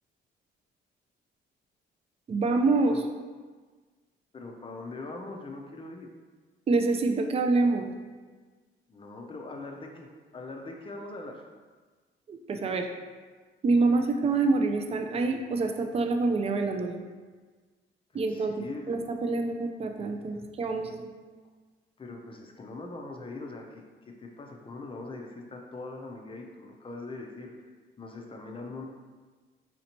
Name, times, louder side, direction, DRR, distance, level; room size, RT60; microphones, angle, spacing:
voice 1, 2.3-3.0 6.7-7.9 12.3-12.9 13.6-17.0 18.1-21.1, right 3 dB, 30° right, 5 dB, 0.4 m, -26 dB
voice 2, 4.3-6.1 8.9-10.1 10.3-11.5 18.1-19.0 20.3-20.5 22.0-23.9 24.2-27.7 28.0-28.8, left 2 dB, 25° left, 1 dB, 0.5 m, -41 dB
4.2 x 2.7 x 2.9 m, 1.4 s
cardioid pair, 90°, 20 cm